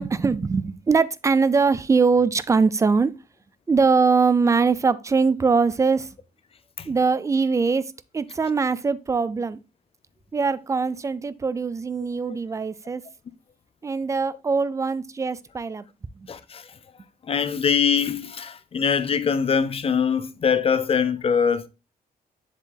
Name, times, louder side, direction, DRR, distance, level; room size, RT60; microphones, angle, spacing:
voice 1, 0.0-3.1 3.7-6.1 6.9-9.6 10.3-13.0 13.8-15.8 16.1-16.3, right 4 dB, 20° right, 0.4 m, -22 dB
voice 2, 16.3-16.7 17.2-21.7, left 6 dB, 35° left, 0.6 m, -23 dB
7.4 x 7.2 x 2.3 m
wide cardioid pair, 160°, 16 cm